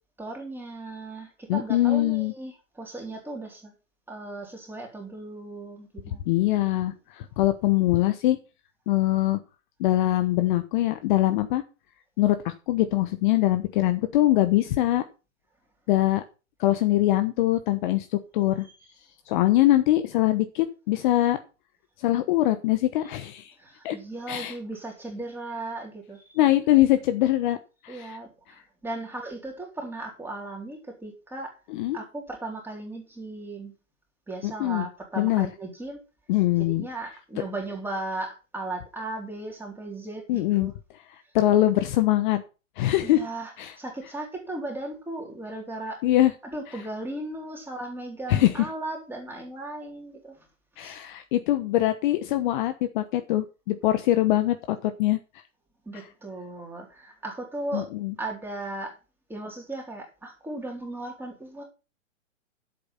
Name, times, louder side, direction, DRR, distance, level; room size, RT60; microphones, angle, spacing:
voice 1, 0.2-3.7 4.1-6.2 23.6-26.4 27.9-31.5 31.9-33.7 34.3-36.0 36.6-40.7 43.0-46.0 46.4-50.4 50.8-51.0 55.9-57.9 58.2-59.0 59.3-61.6, right 2 dB, 5° right, 1 dB, 3.8 m, -36 dB
voice 2, 1.5-2.3 6.3-8.4 8.9-9.4 9.8-11.6 12.2-15.0 15.9-16.2 16.6-18.7 19.3-21.4 22.0-23.5 23.8-24.0 24.3-24.5 26.4-27.6 27.8-28.2 31.7-32.0 34.4-34.9 35.2-35.5 36.3-36.9 40.3-40.7 41.1-42.4 42.8-43.2 43.6-43.7 46.0-46.3 48.3-48.6 50.8-55.2 55.9-56.0 57.7-58.1, left 15 dB, 35° left, 10 dB, 1.0 m, -23 dB
11.0 x 8.3 x 5.8 m, 0.32 s
hypercardioid pair, 140°, 40 cm